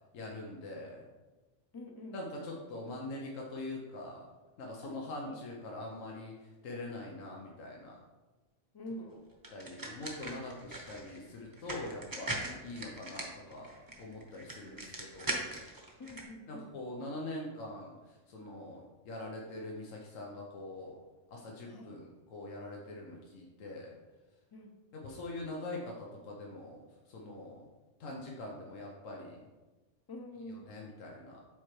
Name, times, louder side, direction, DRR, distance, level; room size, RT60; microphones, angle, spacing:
voice 1, 0.1-1.0 2.1-4.2 4.6-8.0 9.5-12.4 12.6-13.7 14.0-15.5 16.5-21.0 21.3-24.0 24.9-26.8 27.1-27.6 28.0-29.4 30.5-31.4, left 2 dB, 90° left, -2 dB, 1.2 m, -43 dB
voice 2, 1.7-2.2 4.8-5.4 8.7-9.2 14.6-15.0 16.0-16.8 21.7-21.9 24.5-24.7 30.1-30.7, left 1 dB, 25° left, 3 dB, 0.5 m, -46 dB
sound 1, 9.4-16.2, right 1 dB, 20° right, 0.7 m, -41 dB
7.7 x 4.3 x 3.2 m, 1.2 s
omnidirectional pair, 1.3 m